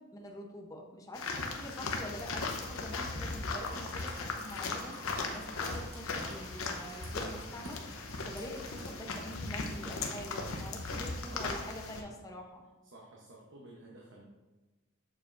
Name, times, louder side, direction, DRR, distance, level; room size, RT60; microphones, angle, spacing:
voice 1, 0.0-12.6, left 1 dB, 15° left, 1 dB, 0.8 m, -45 dB
sound 1, 1.1-12.0, left 3 dB, 85° left, 0.8 m, -38 dB
sound 2, 3.6-9.4 9.7-9.9, right 2 dB, 80° right, 1.5 m, -54 dB
sound 3, 5.0-11.1, right 1 dB, 35° right, 1.5 m, -56 dB
voice 2, 10.9-11.4 12.8-14.2, right 1 dB, 60° right, -3 dB, 1.0 m, -53 dB
7.2 x 6.6 x 2.6 m, 1.2 s
head